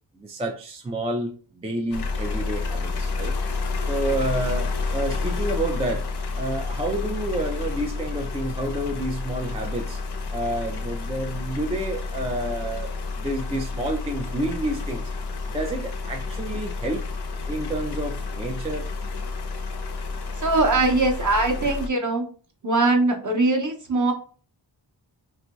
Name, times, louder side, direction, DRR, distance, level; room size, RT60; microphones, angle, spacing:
voice 1, 0.2-3.4 3.8-6.1 6.4-10.0 10.3-15.1 15.5-17.1 17.5-18.9, right 1 dB, 15° right, 3 dB, 0.4 m, -29 dB
sound 1, 1.9-21.9, left 3 dB, 60° left, 0.6 m, -30 dB
voice 2, 20.4-22.3 22.6-24.1, right 2 dB, 40° right, 2 dB, 1.0 m, -21 dB
2.9 x 2.6 x 2.3 m, 0.38 s
wide cardioid pair, 60°, 45 cm